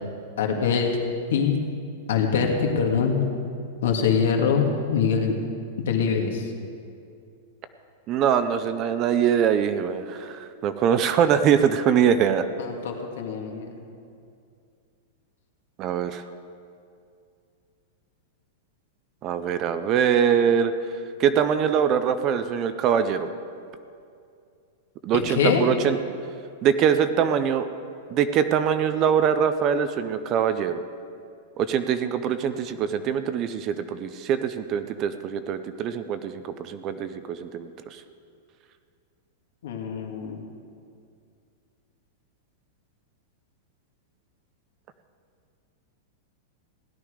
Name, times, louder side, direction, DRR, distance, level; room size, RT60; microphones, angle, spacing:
voice 1, 0.4-0.9 1.3-1.6 2.1-3.2 3.8-5.3 5.9-6.4 12.6-13.8 25.1-25.7 39.6-40.4, left 6 dB, 70° left, 2 dB, 2.0 m, -23 dB
voice 2, 8.1-12.5 15.8-16.2 19.2-20.7 21.2-23.3 25.0-26.0 26.6-27.7 28.1-30.8 31.6-38.0, right 8 dB, 25° right, 11 dB, 0.4 m, -23 dB
16.5 x 11.5 x 5.0 m, 2.4 s
supercardioid pair, 175°, 0 cm